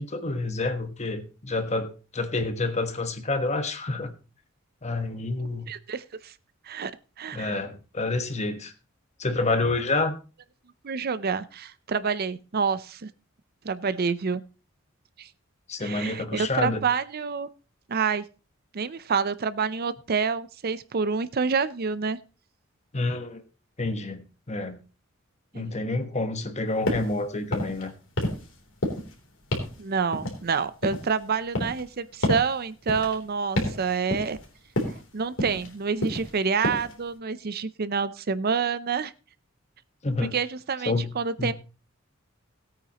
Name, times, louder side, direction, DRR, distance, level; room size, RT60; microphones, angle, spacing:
voice 1, 0.0-4.1 4.8-5.7 7.3-8.7 9.2-10.1 15.7-16.8 22.9-23.4 23.8-24.8 25.5-27.9 40.0-40.3 40.9-41.1 41.4-41.5, left 2 dB, 35° left, 9 dB, 1.2 m, -28 dB
voice 2, 5.7-6.3 6.7-6.9 7.2-7.5 10.8-13.1 13.6-14.4 15.2-15.3 15.8-17.5 17.9-18.2 18.7-22.2 25.5-25.7 29.8-34.4 34.9-39.1 40.3-41.5, right 5 dB, 50° right, 15 dB, 0.6 m, -28 dB
sound 1, 26.9-27.1 27.5-27.8 28.2-28.5 28.8-29.1 29.5-29.8 30.1-31.1 31.5-31.9 32.2-32.5 32.9-33.2 33.6-33.8 34.1-34.5 34.8-35.0 35.4-35.7 36.0-36.3 36.6-36.9, left 1 dB, 70° left, 3.4 m, -29 dB
17.0 x 8.9 x 3.0 m, 0.33 s
head